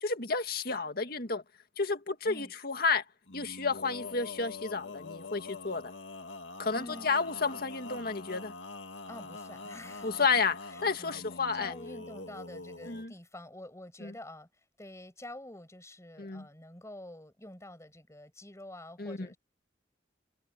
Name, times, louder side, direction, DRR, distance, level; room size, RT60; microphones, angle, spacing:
voice 1, 0.0-1.4 1.8-3.0 3.3-5.9 6.6-8.5 10.0-11.7 12.9-13.1 14.0-14.1 16.2-16.5 19.0-19.3, left 4 dB, 55° left, 2.0 m, -31 dB
Male singing, 3.3-13.1, left 3 dB, 85° left, 2.0 m, -45 dB
voice 2, 6.7-7.1 9.1-10.3 10.7-11.3 11.5-14.5 14.8-19.4, left 1 dB, 15° left, 6.8 m, -47 dB
head